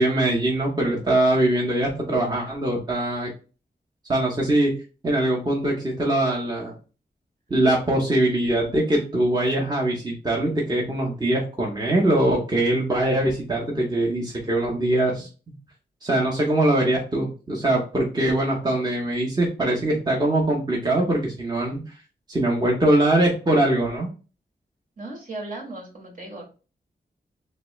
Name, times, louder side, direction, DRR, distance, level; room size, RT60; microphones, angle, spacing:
voice 1, 0.0-3.3 4.1-4.7 5.0-6.7 7.5-15.3 16.0-21.9 22.3-24.1, right 1 dB, 25° right, -2 dB, 0.8 m, -22 dB
voice 2, 25.0-26.4, right 2 dB, 50° right, 0 dB, 1.3 m, -36 dB
3.1 x 2.9 x 3.0 m, 0.35 s
wide cardioid pair, 95°, 17 cm